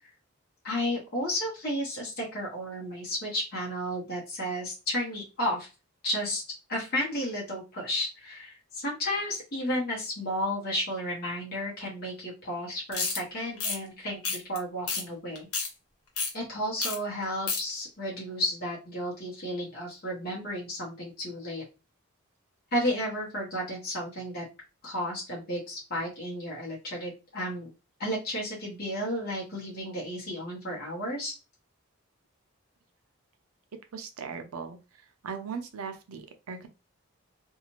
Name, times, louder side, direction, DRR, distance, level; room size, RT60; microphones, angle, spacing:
voice 1, 0.6-5.7 6.0-6.4 6.7-15.5 16.3-21.6 22.7-24.4 24.8-27.7 28.0-31.3, equal, 45° left, -4 dB, 1.0 m, -32 dB
sound 1, 12.9-13.2 13.6-13.8 14.2-14.6 14.9-15.0 15.3-15.7 16.2-16.3 16.8-17.0 17.2-17.6, left 4 dB, 85° left, 1.1 m, -30 dB
voice 2, 33.9-34.8 35.2-36.7, right 5 dB, 85° right, 7 dB, 0.6 m, -38 dB
2.7 x 2.4 x 3.0 m, 0.28 s
head